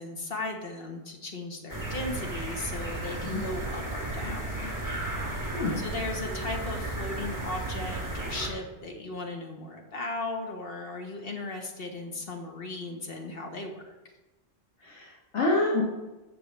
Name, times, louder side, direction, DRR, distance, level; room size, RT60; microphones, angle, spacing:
voice 1, 0.0-4.7 5.8-13.9, left 2 dB, 55° left, 2 dB, 1.7 m, -37 dB
sound 1, 1.7-8.5, right 2 dB, 15° right, 2.1 m, -34 dB
voice 2, 5.5-5.8 14.8-15.8, left 2 dB, 80° left, -4 dB, 1.8 m, -27 dB
14.5 x 6.7 x 3.4 m, 1.1 s
omnidirectional pair, 1.2 m